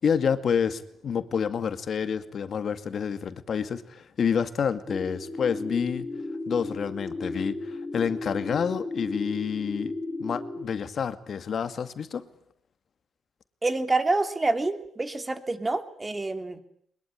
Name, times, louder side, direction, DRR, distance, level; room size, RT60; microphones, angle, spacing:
voice 1, 0.0-6.1 6.5-9.9 10.2-12.3, left 7 dB, 55° left, 11 dB, 2.3 m, -28 dB
sound 1, 4.9-10.7, left 2 dB, 15° left, 3.4 m, -35 dB
voice 2, 13.6-16.6, right 2 dB, 20° right, 9 dB, 3.0 m, -27 dB
22.5 x 22.0 x 10.0 m, 0.68 s
cardioid pair, 90°, 0 cm